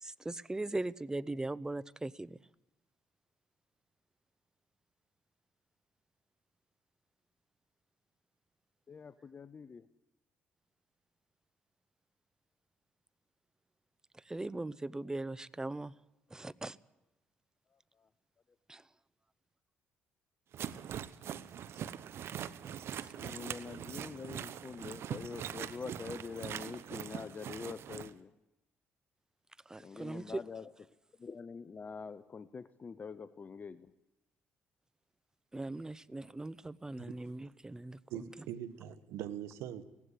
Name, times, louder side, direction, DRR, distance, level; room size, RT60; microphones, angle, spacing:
voice 1, 0.0-2.4 14.1-15.9 16.3-16.8 18.7-18.9 23.0-23.1 29.7-30.4 35.5-38.3, right 2 dB, 15° right, 0.7 m, -40 dB
voice 2, 8.9-9.8 22.7-22.8 23.2-28.3 29.8-30.6 31.2-33.9, left 5 dB, 40° left, 0.8 m, -45 dB
sound 1, 20.5-28.1, right 9 dB, 65° right, 0.9 m, -42 dB
voice 3, 38.1-39.8, right 11 dB, 85° right, 1.3 m, -42 dB
17.5 x 15.5 x 9.9 m
supercardioid pair, 70°, 5 cm